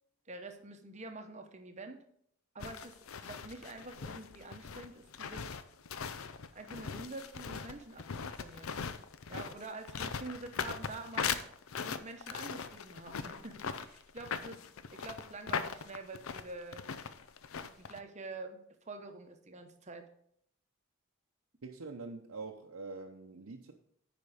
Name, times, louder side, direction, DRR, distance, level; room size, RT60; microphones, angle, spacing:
voice 1, 0.3-2.0 2.5-2.9 3.2-5.5 6.5-8.8 9.3-11.4 11.8-14.6 14.9-16.8 17.6-18.6 18.9-20.0, right 2 dB, 35° right, 6 dB, 0.9 m, -46 dB
sound 1, 2.6-18.0, left 6 dB, 80° left, 0.6 m, -40 dB
voice 2, 21.6-23.7, right 3 dB, 85° right, 0 dB, 0.7 m, -44 dB
9.5 x 5.1 x 5.0 m, 0.70 s
head